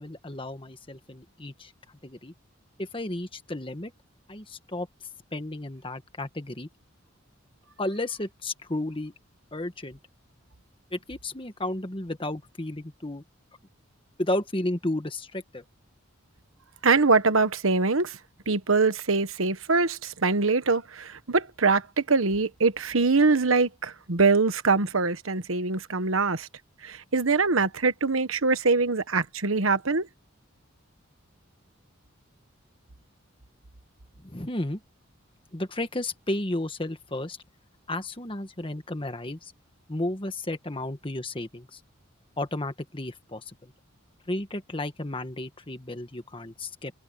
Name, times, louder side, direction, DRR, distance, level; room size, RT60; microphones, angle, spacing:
voice 1, 0.0-1.7 2.0-2.3 2.8-3.9 4.3-4.9 5.3-6.7 7.8-9.1 9.5-10.0 10.9-13.2 14.2-15.6 34.2-34.8 35.5-37.4 37.9-39.5 39.9-41.8 42.4-43.7 44.3-46.9, left 1 dB, 25° left, 1.6 m, -33 dB
voice 2, 16.8-18.1 18.5-21.8 22.1-26.5 26.8-30.1, right 4 dB, 85° right, 1.3 m, -23 dB
head